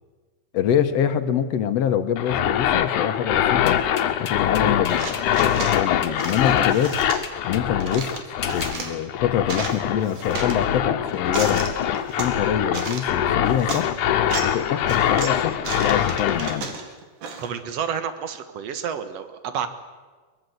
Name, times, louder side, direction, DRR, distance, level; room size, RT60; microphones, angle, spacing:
voice 1, 0.5-3.8 4.2-5.2 5.5-7.0 7.4-8.1 8.5-11.6 12.2-14.0 14.4-16.8, left 9 dB, 65° left, 10 dB, 2.0 m, -25 dB
sound 1, 2.2-16.6, left 10 dB, 85° left, 2.6 m, -23 dB
sound 2, 3.7-7.7 8.4-8.8, left 7 dB, 45° left, 1.8 m, -35 dB
sound 3, 4.9-5.8 6.2-7.2 7.8-9.0 9.3-10.6 11.1-12.3 12.7-13.2 13.5-13.8 14.2-14.6 14.9-17.5, right 5 dB, 90° right, 3.8 m, -33 dB
voice 2, 17.4-19.7, right 7 dB, 60° right, 10 dB, 2.5 m, -29 dB
23.0 x 21.0 x 8.0 m, 1.4 s
omnidirectional pair, 3.5 m